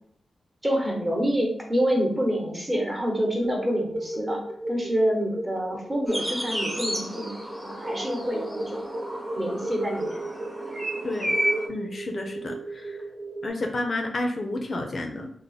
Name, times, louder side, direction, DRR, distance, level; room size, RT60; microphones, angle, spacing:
voice 1, 0.6-4.4 4.7-7.4 7.6-8.8 9.4-10.2, equal, 20° right, 0 dB, 0.9 m, -27 dB
sound 1, 3.4-13.5, right 2 dB, 75° right, 0.5 m, -35 dB
sound 2, 6.1-11.7, equal, 5° right, 0.7 m, -32 dB
voice 2, 11.7-13.0 13.4-15.3, left 2 dB, 45° left, 4 dB, 0.4 m, -30 dB
3.4 x 2.1 x 3.9 m, 0.66 s
wide cardioid pair, 105°, 0 cm